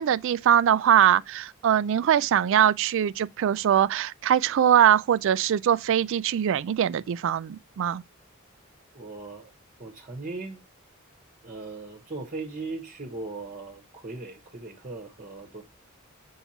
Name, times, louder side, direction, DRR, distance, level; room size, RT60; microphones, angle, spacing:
voice 1, 0.0-8.0, right 9 dB, 65° right, 0.3 m, -22 dB
voice 2, 8.9-9.5 9.8-10.6 11.4-15.6, right 3 dB, 40° right, 1.0 m, -38 dB
7.2 x 5.6 x 2.8 m
head